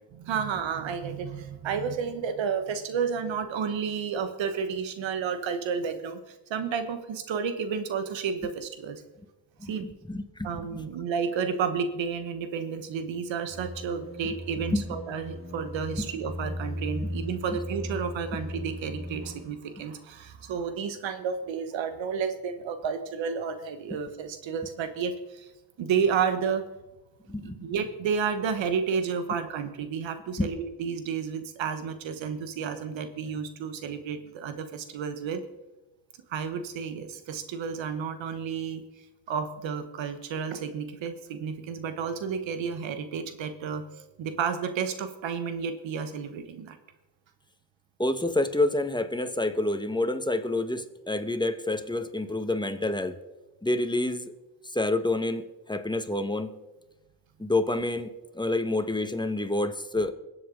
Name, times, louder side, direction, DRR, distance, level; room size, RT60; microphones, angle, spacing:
voice 1, 0.1-9.0 9.6-9.9 10.4-25.5 25.8-26.6 27.4-35.4 36.3-38.8 39.3-43.8 44.2-46.8, right 6 dB, 85° right, 10 dB, 1.2 m, -31 dB
voice 2, 9.6-10.8 14.7-14.8 16.0-16.1 27.3-27.6 30.4-30.5 48.0-53.2 53.6-54.3 54.7-55.4 55.7-56.6 57.4-58.1 58.3-60.1, left 2 dB, 10° left, 8 dB, 1.5 m, -28 dB
sound 1, 13.5-19.5, equal, 30° right, 2.9 m, -37 dB
22.0 x 7.7 x 3.9 m, 1.1 s
supercardioid pair, 45°, 44 cm